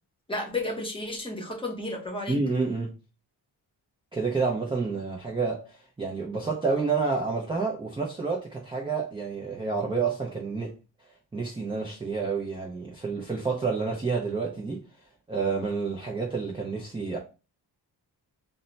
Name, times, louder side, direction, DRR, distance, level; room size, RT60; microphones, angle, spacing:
voice 1, 0.3-2.4, left 2 dB, 10° left, 0.8 m, -32 dB
voice 2, 2.3-2.9 4.1-10.7 11.3-14.8 15.3-17.2, right 4 dB, 15° right, 0.4 m, -29 dB
2.1 x 2.1 x 3.8 m
cardioid pair, 115°, 43 cm